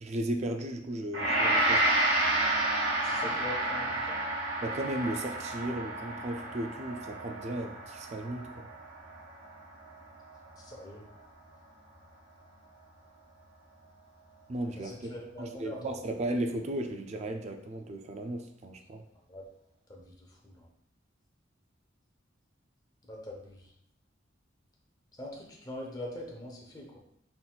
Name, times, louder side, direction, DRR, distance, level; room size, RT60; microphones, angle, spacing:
voice 1, 0.0-1.8 4.6-8.6 14.5-14.9 15.4-19.0, right 1 dB, 35° right, 5 dB, 0.3 m, -35 dB
Gong, 1.1-10.3, right 1 dB, 80° right, 1.3 m, -30 dB
voice 2, 3.0-4.2 10.6-11.0 14.8-16.0 19.3-19.4 19.9-20.7 23.1-23.7 25.2-27.0, left 1 dB, 20° left, -1 dB, 0.7 m, -43 dB
3.9 x 3.8 x 2.3 m, 0.75 s
head